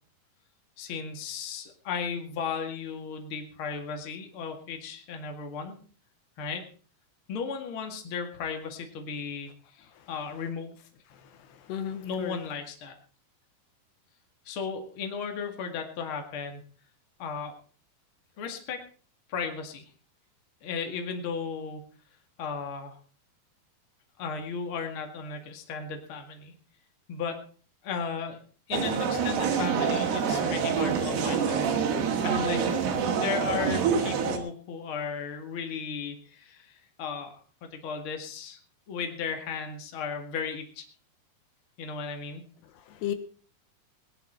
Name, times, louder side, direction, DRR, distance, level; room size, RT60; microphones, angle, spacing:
voice 1, 0.8-5.8 6.4-6.6 7.3-10.7 12.0-12.9 14.5-16.6 17.2-17.5 18.4-18.8 19.3-19.8 20.6-21.9 22.4-23.0 24.2-26.5 27.1-27.4 27.8-28.4 28.7-31.6 32.0-32.6 33.1-38.6 38.9-40.9 41.8-42.4, left 5 dB, 40° left, 4 dB, 2.1 m, -35 dB
voice 2, 11.1-12.4 42.7-43.1, left 10 dB, 80° left, 9 dB, 3.2 m, -36 dB
sound 1, 28.7-34.4, right 6 dB, 75° right, 3.8 m, -26 dB
19.5 x 10.5 x 4.4 m, 0.41 s
omnidirectional pair, 4.8 m